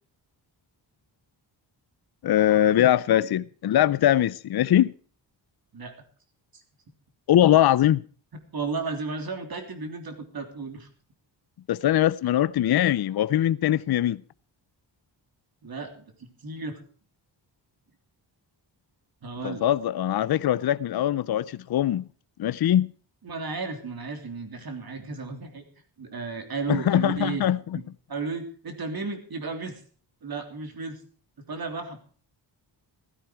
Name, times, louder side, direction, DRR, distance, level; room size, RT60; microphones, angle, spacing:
voice 1, 2.2-4.9 7.3-8.0 11.7-14.2 19.4-22.0 22.4-22.9 26.7-27.6, left 12 dB, 55° left, 0.6 m, -22 dB
voice 2, 8.5-10.9 15.6-16.8 19.2-19.6 23.2-25.6 26.0-27.4 27.7-27.8 28.1-29.8 30.2-31.0 31.5-32.0, right 4 dB, 50° right, 3.3 m, -34 dB
15.0 x 14.0 x 4.6 m
wide cardioid pair, 130°, 45 cm